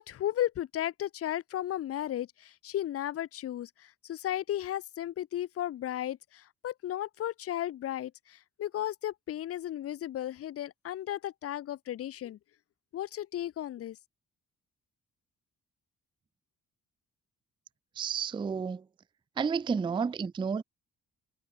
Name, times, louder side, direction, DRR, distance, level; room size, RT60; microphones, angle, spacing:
voice 1, 0.0-12.4 12.9-14.0, left 12 dB, 50° left, 0.4 m, -35 dB
voice 2, 18.0-18.8 19.4-20.6, right 6 dB, 15° right, 0.3 m, -31 dB
cardioid pair, 130°, 32 cm